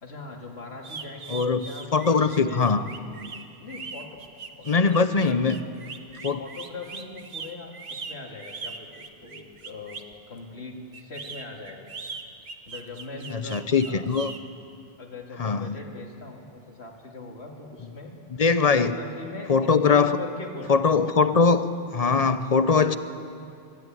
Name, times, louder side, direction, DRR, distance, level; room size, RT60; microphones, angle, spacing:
voice 1, 0.0-2.7 3.6-4.2 4.6-5.4 6.4-10.0 10.3-11.8 12.7-14.1 15.0-18.1 18.6-20.7, left 3 dB, 80° left, 1 dB, 2.6 m, -40 dB
sound 1, 0.8-10.1 10.9-14.4, right 5 dB, 55° right, 1.2 m, -40 dB
voice 2, 1.3-1.6 1.9-2.8 4.7-5.6 6.2-6.4 13.3-14.3 15.4-15.7 18.4-19.0 19.5-20.2 20.7-21.7 21.9-23.0, left 5 dB, 40° left, 11 dB, 0.8 m, -21 dB
23.5 x 13.0 x 9.2 m, 2.5 s
omnidirectional pair, 1.1 m